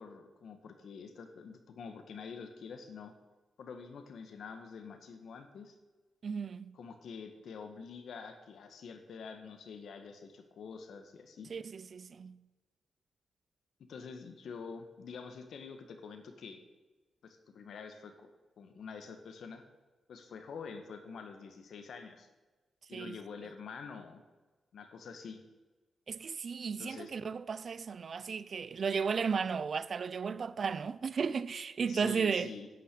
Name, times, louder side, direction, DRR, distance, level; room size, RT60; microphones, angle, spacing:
voice 1, 0.0-3.1 3.6-5.8 6.7-11.5 13.8-16.6 17.2-18.3 18.6-19.6 20.1-22.3 22.9-24.2 24.7-25.4 26.8-27.1 31.9-32.7, left 5 dB, 65° left, 1.7 m, -47 dB
voice 2, 6.2-6.8 11.5-12.4 22.9-23.2 26.1-32.5, right 5 dB, 40° right, 0.5 m, -34 dB
11.0 x 9.4 x 8.5 m
wide cardioid pair, 180°, 0 cm